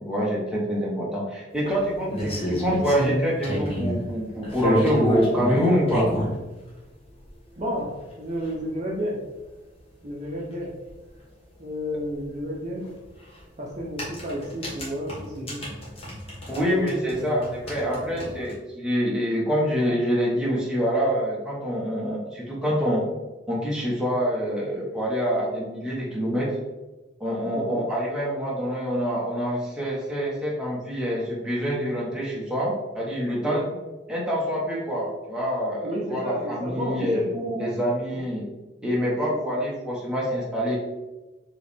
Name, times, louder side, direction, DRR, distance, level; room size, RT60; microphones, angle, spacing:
voice 1, 0.0-6.1 16.5-23.0 23.5-26.5 27.2-33.6 34.1-37.2 37.6-38.4 38.8-40.8, equal, 5° right, -6 dB, 0.9 m, -26 dB
sound 1, 1.7-4.0 4.4-6.3 7.3-7.4 7.8-7.9 8.1-8.2 8.5-8.6 10.5-10.6 10.9-11.0 12.9-13.1 13.8-16.6 16.9-18.5, equal, 30° left, 1.2 m, -27 dB
voice 2, 7.6-9.2 10.0-10.7 11.6-12.9 13.6-15.7 16.6-17.5 18.1-18.4 27.5-27.8 33.4-33.7 35.7-37.7 38.1-38.2 39.3-39.6, equal, 35° right, -3 dB, 0.6 m, -32 dB
4.6 x 3.1 x 3.4 m, 1.1 s
head